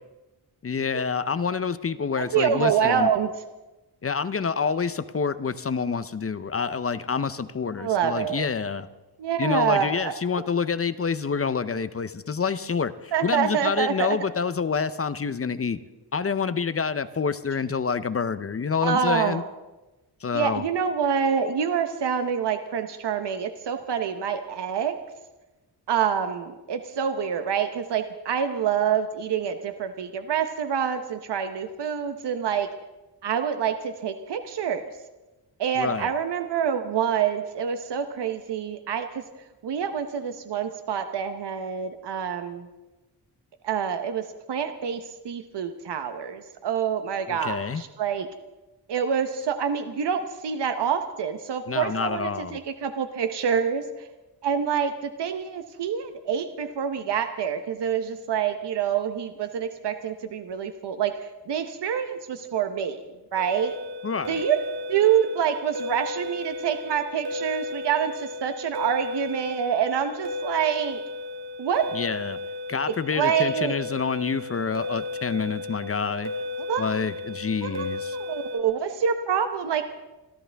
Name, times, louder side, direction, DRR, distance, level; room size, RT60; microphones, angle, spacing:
voice 1, 0.6-3.1 4.0-8.9 9.4-15.8 16.1-19.4 20.2-20.6 35.8-36.1 47.3-47.8 51.7-52.6 64.0-64.4 71.9-72.4 72.7-76.3 76.8-78.2, left 5 dB, 35° left, 14 dB, 0.6 m, -27 dB
voice 2, 2.2-3.3 7.8-8.4 9.2-10.4 13.1-14.2 18.8-19.4 20.3-25.0 25.9-32.7 33.2-34.8 35.6-39.2 39.6-42.7 43.6-48.3 48.9-54.1 54.4-63.0 63.3-63.8 64.3-64.6 64.9-71.0 71.6-71.8 73.1-73.7 76.7-76.9 77.6-77.9 78.2-79.8, right 8 dB, 80° right, 7 dB, 1.0 m, -26 dB
sound 1, 63.4-78.6, left 2 dB, 65° right, 2.1 m, -34 dB
27.0 x 13.5 x 3.4 m, 1.1 s
wide cardioid pair, 125°, 40 cm